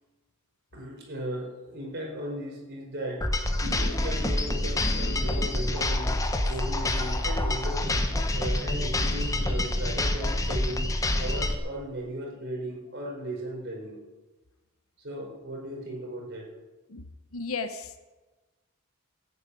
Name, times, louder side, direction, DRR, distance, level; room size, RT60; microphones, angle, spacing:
voice 1, 0.7-3.3 3.6-6.2 6.4-14.0 15.0-16.5, right 1 dB, 55° right, -1 dB, 4.9 m, -36 dB
sound 1, 3.2-11.5, left 1 dB, 15° left, 1.1 m, -27 dB
voice 2, 16.9-18.0, left 4 dB, 75° left, 9 dB, 1.0 m, -36 dB
14.5 x 9.1 x 8.4 m, 1.2 s
head